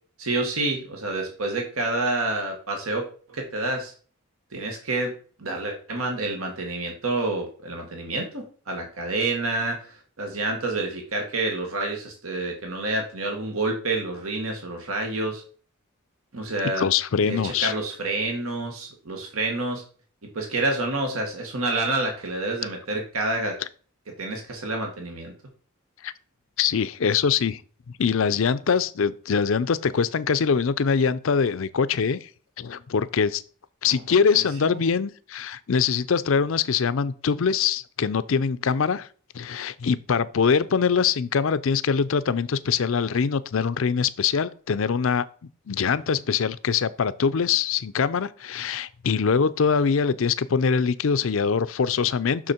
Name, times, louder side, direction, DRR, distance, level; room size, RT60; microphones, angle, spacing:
voice 1, 0.2-3.9 4.5-5.1 5.4-15.4 16.3-16.9 17.2-19.8 20.4-23.6 24.2-25.3 34.6-34.8, right 2 dB, 80° right, 1.7 m, -28 dB
voice 2, 16.8-17.7 26.0-26.1 26.6-27.6 28.0-32.3 32.6-33.4 33.8-39.1 39.3-45.2 45.7-52.5, left 6 dB, 70° left, 0.5 m, -23 dB
6.3 x 6.1 x 4.4 m
head